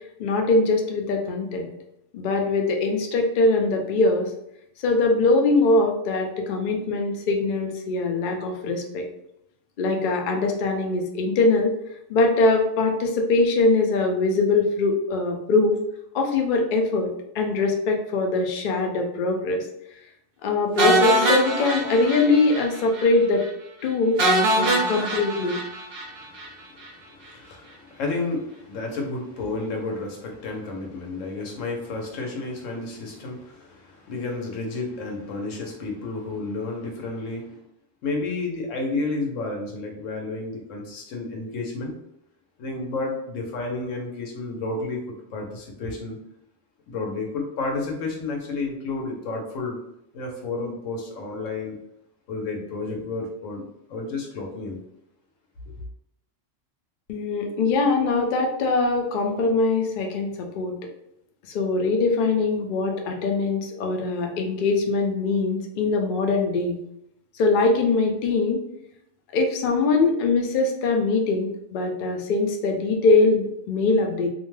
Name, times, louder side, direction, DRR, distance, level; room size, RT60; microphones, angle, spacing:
voice 1, 0.2-1.7 2.1-4.3 4.8-9.1 9.8-11.7 12.1-15.8 16.1-19.7 20.4-23.4 23.8-24.2 24.5-25.6 57.1-60.8 61.5-66.8 67.4-68.6 69.3-74.3, left 3 dB, 55° left, 2 dB, 0.6 m, -22 dB
sound 1, 20.8-22.7 22.9-23.1 23.4-23.5 24.2-26.5, right 1 dB, 55° right, 0.8 m, -22 dB
voice 2, 26.0-37.6 38.0-42.0 42.6-46.2 46.9-49.8 50.1-51.8 52.3-54.8, left 3 dB, 85° left, 1 dB, 1.1 m, -31 dB
2.6 x 2.1 x 3.1 m, 0.79 s
omnidirectional pair, 1.3 m